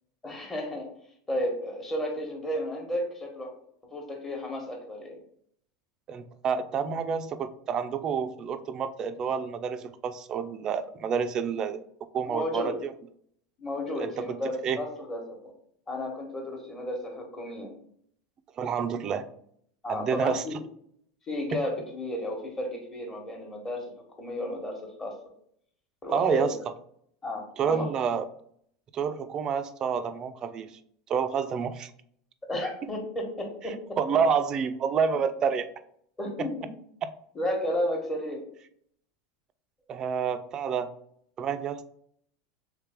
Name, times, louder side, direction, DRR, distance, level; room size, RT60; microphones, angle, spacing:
voice 1, 0.2-0.9 1.3-3.5 3.9-5.2 12.3-12.7 13.6-15.5 15.9-17.7 19.8-20.6 21.2-23.8 24.2-25.1 26.0-26.5 27.2-27.9 32.5-34.0 36.2-36.6 37.3-38.5, left 1 dB, 20° left, 1 dB, 1.1 m, -33 dB
voice 2, 6.1-11.8 12.1-12.9 14.0-14.4 14.6-14.8 18.6-19.2 19.9-20.4 21.5-21.6 26.1-26.5 27.6-28.2 28.9-30.8 31.1-31.9 33.7-35.7 36.4-36.5 39.9-40.9 41.4-41.8, right 6 dB, 35° right, 11 dB, 0.3 m, -28 dB
3.2 x 3.2 x 3.5 m, 0.67 s
supercardioid pair, 120°, 2 cm